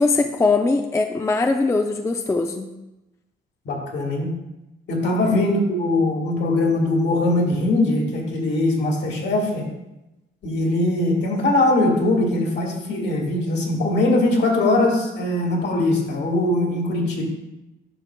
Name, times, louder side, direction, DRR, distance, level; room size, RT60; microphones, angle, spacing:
voice 1, 0.0-2.7 5.2-5.5, left 3 dB, 15° left, 5 dB, 0.4 m, -21 dB
voice 2, 3.7-4.3 4.9-9.7 10.4-17.2, left 2 dB, 60° left, 0 dB, 1.8 m, -21 dB
10.0 x 5.9 x 2.2 m, 0.97 s
cardioid pair, 90°, 20 cm